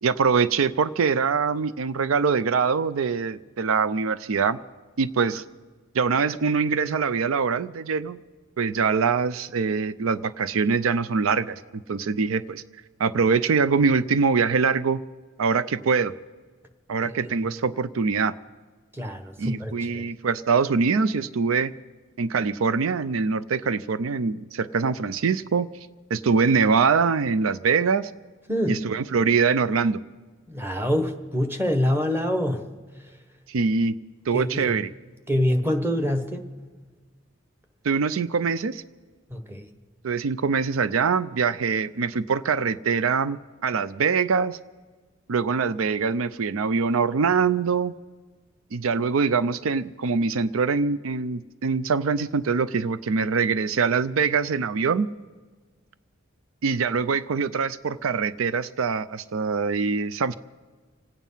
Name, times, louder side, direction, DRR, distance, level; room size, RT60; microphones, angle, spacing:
voice 1, 0.0-4.6 5.0-5.4 5.9-8.2 8.6-11.6 11.9-12.6 13.0-15.0 15.4-16.1 16.9-18.3 19.4-21.7 22.2-25.7 26.1-28.1 28.7-30.0 33.5-34.0 34.3-34.9 37.8-38.8 40.0-44.6 45.3-47.9 48.7-55.1 56.6-60.4, right 5 dB, 90° right, 15 dB, 0.5 m, -23 dB
voice 2, 17.0-17.3 18.9-20.0 28.5-28.9 30.5-32.7 34.3-34.8 35.3-36.5 39.3-39.7, equal, 10° right, 6 dB, 1.2 m, -26 dB
26.5 x 9.2 x 5.6 m, 1.4 s
head